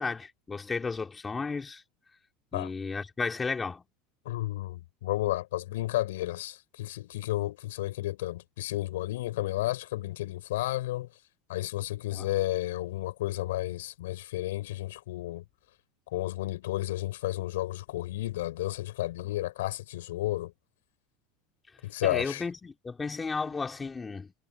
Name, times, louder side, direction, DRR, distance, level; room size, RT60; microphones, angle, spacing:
voice 1, 0.0-1.8 2.5-3.8 12.1-12.3 22.0-24.3, left 4 dB, 20° left, 3.9 m, -33 dB
voice 2, 4.2-11.1 11.5-15.4 16.1-20.5 21.8-22.4, left 16 dB, 85° left, 7.9 m, -32 dB
supercardioid pair, 110°, 0 cm